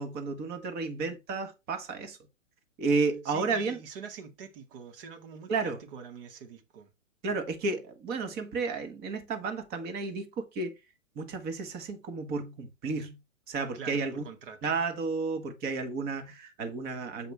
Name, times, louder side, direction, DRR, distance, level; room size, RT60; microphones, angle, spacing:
voice 1, 0.0-2.2 2.8-3.8 5.5-5.8 7.2-10.7 11.1-13.2 13.5-14.2 14.6-17.3, right 4 dB, 25° right, 1.6 m, -32 dB
voice 2, 3.3-6.9 13.7-14.7, right 6 dB, 45° right, 2.0 m, -45 dB
8.2 x 5.2 x 3.4 m
figure-of-eight pair, 120°, 38 cm